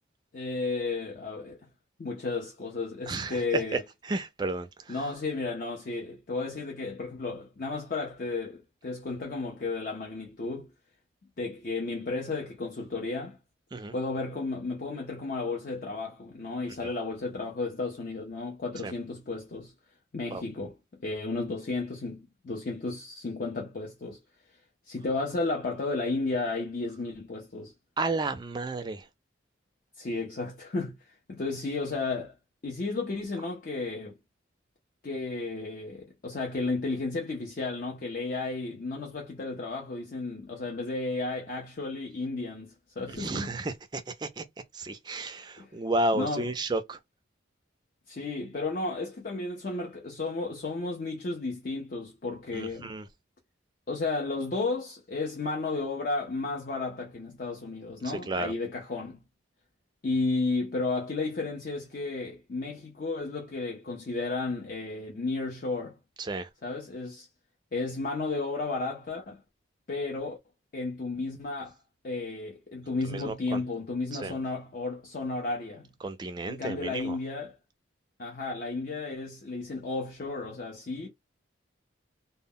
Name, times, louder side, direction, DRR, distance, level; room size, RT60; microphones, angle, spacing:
voice 1, 0.3-1.6 2.0-3.8 4.9-10.7 11.4-13.4 13.9-19.7 20.1-20.7 21.0-24.2 24.9-27.7 30.0-32.3 32.6-34.1 35.0-43.5 45.6-45.7 46.1-46.5 48.1-52.9 53.9-59.2 60.0-66.0 66.6-67.3 67.7-69.4 69.9-70.4 70.7-71.7 72.0-75.9 76.5-77.6 78.2-81.1, left 3 dB, 45° left, 0.5 m, -33 dB
voice 2, 3.1-3.8 4.1-5.0 13.7-13.9 18.8-18.9 20.3-20.4 28.0-29.1 43.1-44.4 44.7-47.0 52.5-53.1 58.3-58.5 66.2-66.5 73.1-73.6 74.1-74.3 76.0-77.2, right 2 dB, 20° right, 0.3 m, -32 dB
2.1 x 2.0 x 3.6 m
head